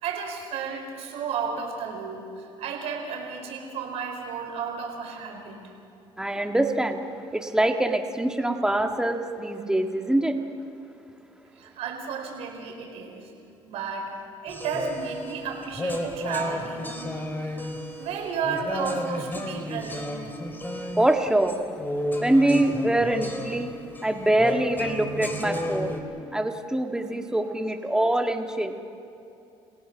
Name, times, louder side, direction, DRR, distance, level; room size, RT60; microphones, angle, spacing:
voice 1, 0.0-5.6 11.5-13.3 13.7-14.1 14.4-17.7 18.0-20.3, right 6 dB, 75° right, 1 dB, 4.8 m, -33 dB
voice 2, 6.2-7.0 7.3-10.4 21.0-21.6 22.2-23.7 24.0-25.9 26.3-28.7, right 1 dB, 5° right, 4 dB, 1.9 m, -24 dB
sound 1, 14.5-26.0, left 1 dB, 20° left, 3.3 m, -33 dB
30.0 x 17.5 x 6.3 m, 2.8 s
supercardioid pair, 90°, 11 cm